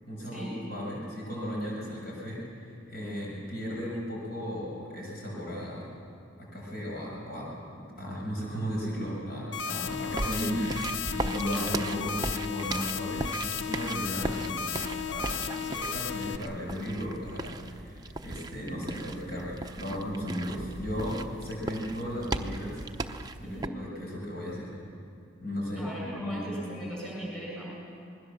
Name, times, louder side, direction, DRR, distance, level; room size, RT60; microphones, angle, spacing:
voice 1, 0.0-5.9 6.4-22.8 23.4-24.7 25.4-25.9 26.2-26.5, equal, 50° left, -4 dB, 6.8 m, -35 dB
sound 1, 9.5-16.4, left 7 dB, 65° left, 0.7 m, -34 dB
sound 2, 9.9-23.7, right 2 dB, 20° right, 0.7 m, -38 dB
voice 2, 11.5-11.8 23.4-23.8 25.8-27.7, right 1 dB, 5° left, -4 dB, 7.5 m, -38 dB
27.0 x 20.5 x 7.3 m, 2.4 s
head